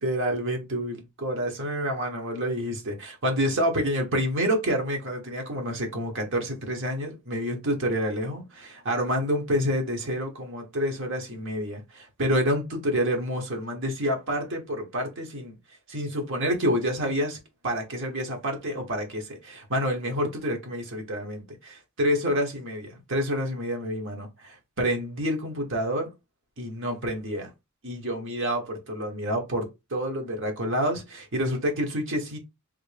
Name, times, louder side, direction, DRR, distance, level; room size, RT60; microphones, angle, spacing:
voice 1, 0.0-15.6 15.9-17.4 17.6-26.1 26.6-27.5 27.8-32.4, equal, 60° right, 1.3 m, -28 dB
3.6 x 2.8 x 3.3 m
head